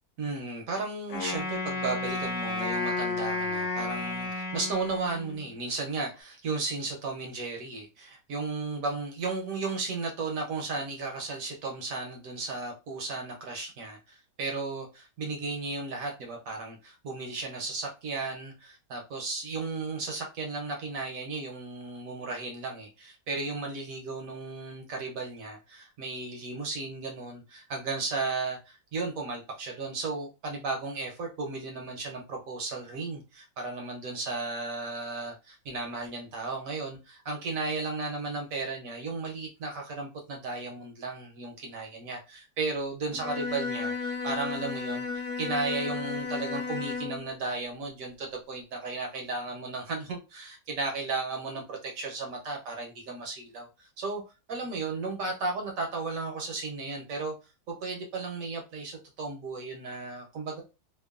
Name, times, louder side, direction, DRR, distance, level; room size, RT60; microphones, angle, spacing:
voice 1, 0.2-54.2 54.5-57.3 57.7-60.6, right 3 dB, 65° right, 0.9 m, -35 dB
Wind instrument woodwind instrument, 1.1-5.5, left 2 dB, 85° left, 1.2 m, -32 dB
Bowed string instrument, 43.1-47.3, left 5 dB, 55° left, 0.9 m, -34 dB
2.9 x 2.2 x 2.3 m
omnidirectional pair, 1.8 m